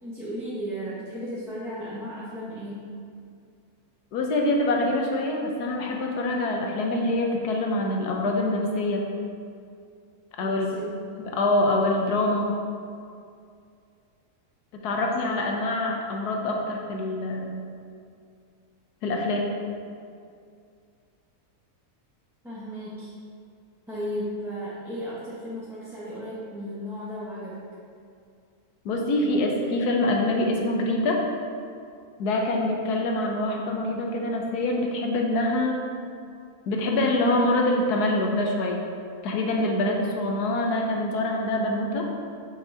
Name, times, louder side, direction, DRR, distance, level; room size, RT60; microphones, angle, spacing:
voice 1, 0.0-2.8 10.4-10.9 22.4-23.1 23.9-27.6, equal, ahead, -10 dB, 0.9 m, -35 dB
voice 2, 4.1-9.1 10.4-10.8 11.3-12.5 14.8-17.6 19.0-19.5 28.8-31.2 32.2-35.8 36.7-38.8 39.2-42.0, left 1 dB, 85° left, 1 dB, 1.4 m, -25 dB
6.3 x 5.3 x 3.9 m, 2.3 s
omnidirectional pair, 1.6 m